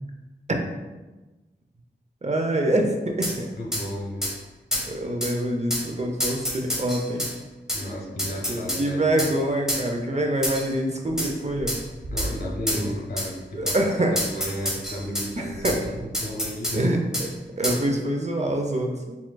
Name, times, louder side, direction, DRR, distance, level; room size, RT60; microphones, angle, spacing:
voice 1, 2.2-3.5 4.9-7.2 8.5-11.8 12.7-12.9 13.6-14.2 15.4-15.8 16.7-17.0 17.6-19.2, right 1 dB, 35° right, 2 dB, 0.6 m, -25 dB
voice 2, 3.2-4.3 7.7-9.3 12.1-16.9, equal, 55° left, -1 dB, 1.2 m, -34 dB
sound 1, 3.2-3.4 3.7-3.8 4.2-4.3 4.7-4.9 5.2-5.3 5.7-5.9 6.2-7.3 7.7-7.8 8.2-8.8 9.2-9.3 9.7-9.8 10.4-10.7 11.2-11.3 11.7-11.8 12.2-12.3 12.7-12.8 13.2-13.3 13.7-13.8 14.2-15.3 15.6-15.8 16.1-16.8 17.1-17.3 17.6-17.8, equal, 5° right, 1.2 m, -27 dB
sound 2, 11.0-16.1, right 1 dB, 75° right, 0.8 m, -40 dB
4.6 x 3.6 x 2.2 m, 1.2 s
cardioid pair, 50°, 19 cm